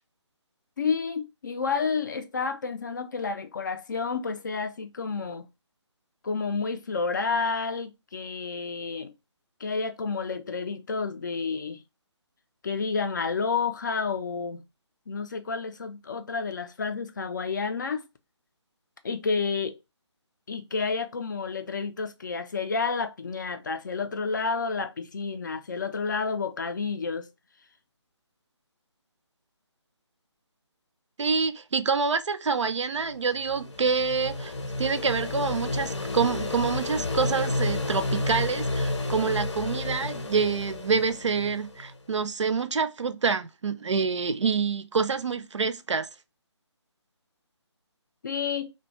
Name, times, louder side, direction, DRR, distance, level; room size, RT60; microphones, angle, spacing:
voice 1, 0.8-5.5 6.2-9.1 9.6-11.8 12.6-14.6 15.1-18.0 19.0-19.8 20.5-27.3 48.2-48.7, left 5 dB, 40° left, 0.4 m, -30 dB
voice 2, 31.2-34.5 34.8-46.1, right 5 dB, 75° right, 0.5 m, -27 dB
sound 1, 33.1-41.9, left 2 dB, 75° left, 0.7 m, -31 dB
2.6 x 2.2 x 3.0 m
figure-of-eight pair, 155°, 15 cm